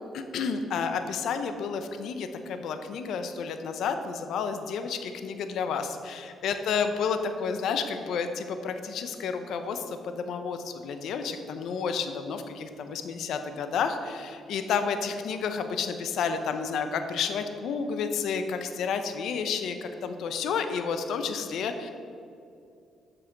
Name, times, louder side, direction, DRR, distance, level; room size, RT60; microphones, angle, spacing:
voice 1, 0.1-21.9, left 6 dB, 75° left, 8 dB, 0.7 m, -31 dB
7.9 x 6.2 x 5.9 m, 2.5 s
cardioid pair, 90°, 0 cm